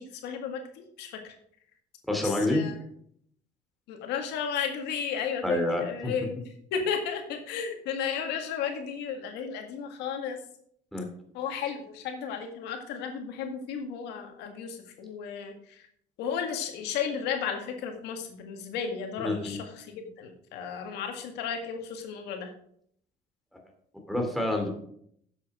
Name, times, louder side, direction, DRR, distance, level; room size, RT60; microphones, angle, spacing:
voice 1, 0.0-1.4 2.1-2.8 3.9-10.4 11.3-15.9 16.2-22.5, left 7 dB, 90° left, 4 dB, 1.9 m, -34 dB
voice 2, 2.1-2.6 5.4-6.1 10.9-11.0 19.2-19.6 24.1-24.7, left 1 dB, ahead, 2 dB, 2.9 m, -27 dB
10.5 x 7.6 x 4.9 m, 0.66 s
cardioid pair, 110°, 17 cm